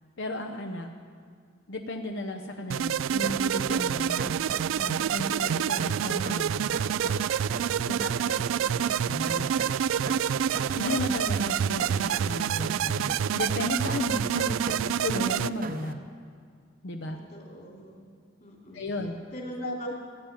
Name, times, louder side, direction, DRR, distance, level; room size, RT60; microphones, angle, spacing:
voice 1, 0.2-0.9 1.7-4.3 4.8-6.7 7.9-8.4 8.7-8.8 9.1-9.6 10.7-16.0 16.8-17.2 18.7-19.2 19.6-19.9, left 1 dB, 70° left, 3 dB, 0.8 m, -34 dB
sound 1, 2.7-15.5, right 9 dB, 90° right, 0.3 m, -27 dB
sound 2, 3.2-15.9, right 3 dB, 45° right, 0.7 m, -40 dB
voice 2, 8.0-9.1 17.3-18.0 18.4-18.9 19.3-19.9, equal, 45° left, -2 dB, 3.3 m, -43 dB
15.0 x 10.0 x 9.0 m, 2.1 s
head